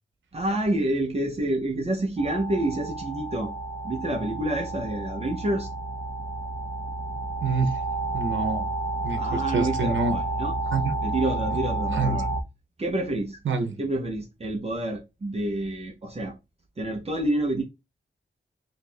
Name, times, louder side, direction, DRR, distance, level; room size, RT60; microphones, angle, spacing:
voice 1, 0.3-3.5 3.8-5.7 9.1-10.5 11.0-12.3 12.8-13.4 13.8-16.4 16.8-17.6, right 1 dB, 30° right, 0.6 m, -28 dB
sound 1, 2.2-12.4, right 2 dB, 30° left, 0.6 m, -30 dB
voice 2, 7.4-7.8 8.1-8.7 9.0-10.2 10.7-10.9 11.9-12.2 13.4-13.8, right 4 dB, 80° right, 0.8 m, -26 dB
2.7 x 2.5 x 4.1 m
wide cardioid pair, 165°, 19 cm